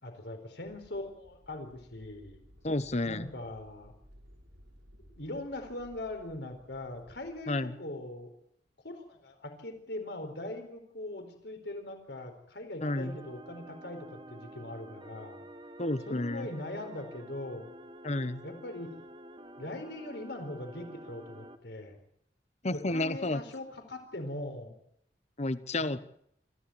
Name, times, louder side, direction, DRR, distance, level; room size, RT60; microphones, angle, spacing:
voice 1, 0.0-2.4 3.1-3.9 5.1-8.3 8.8-15.4 16.1-17.7 18.4-19.1 19.6-22.0 22.7-24.7 25.8-26.0, left 1 dB, 65° left, 5 dB, 4.4 m, -41 dB
sound 1, 0.6-7.4, equal, 85° right, 6.6 m, -58 dB
voice 2, 2.6-3.3 7.5-7.8 12.8-13.1 15.8-16.5 18.0-18.4 22.6-23.4 25.4-26.0, left 2 dB, 40° left, 14 dB, 1.1 m, -31 dB
sound 2, 12.8-21.6, right 1 dB, 30° right, 1.6 m, -49 dB
25.5 x 14.5 x 8.8 m, 0.71 s
head